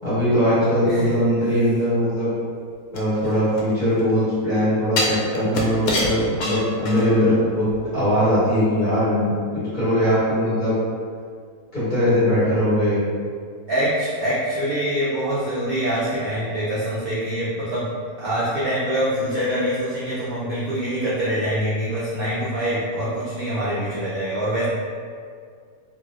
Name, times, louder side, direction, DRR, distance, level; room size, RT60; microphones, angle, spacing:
voice 1, 0.0-2.3 2.9-7.7 7.9-10.8 11.7-13.0, equal, 35° left, -13 dB, 1.5 m, -20 dB
sound 1, 2.9-4.1 5.0-7.3 7.7-7.8, left 1 dB, 80° left, 1.0 m, -26 dB
voice 2, 13.7-17.9 18.2-24.7, equal, 55° right, -10 dB, 0.6 m, -24 dB
3.0 x 2.6 x 2.4 m, 2.1 s
omnidirectional pair, 1.5 m